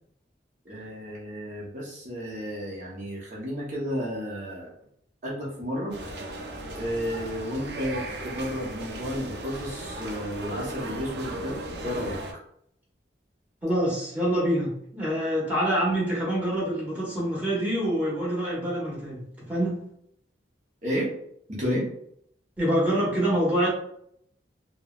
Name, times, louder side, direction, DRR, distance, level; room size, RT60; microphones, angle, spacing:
voice 1, 0.6-4.7 5.2-6.0 6.7-11.6 11.8-12.2 20.8-21.1 21.5-21.9, equal, 40° right, -5 dB, 0.8 m, -32 dB
sound 1, 5.9-12.3, right 1 dB, 65° right, 0.4 m, -36 dB
voice 2, 13.6-19.2 19.5-19.8 22.6-23.7, right 1 dB, 10° right, -7 dB, 1.1 m, -26 dB
3.2 x 2.1 x 2.4 m, 0.71 s
head